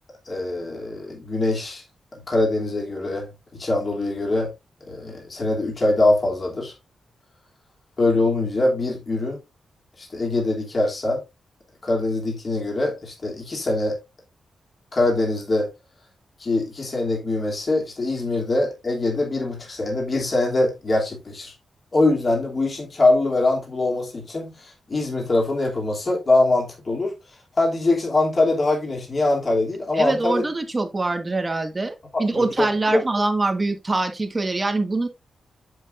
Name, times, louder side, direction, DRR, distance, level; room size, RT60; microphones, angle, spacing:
voice 1, 0.3-1.8 2.1-4.5 4.9-6.7 8.0-9.4 10.0-11.2 11.8-14.0 14.9-15.7 16.4-21.5 21.9-27.1 27.6-30.4 32.1-33.0, left 2 dB, 35° left, 3.0 m, -23 dB
voice 2, 29.9-35.1, right 2 dB, 25° right, 1.5 m, -24 dB
7.8 x 7.6 x 2.6 m
wide cardioid pair, 115°, 0 cm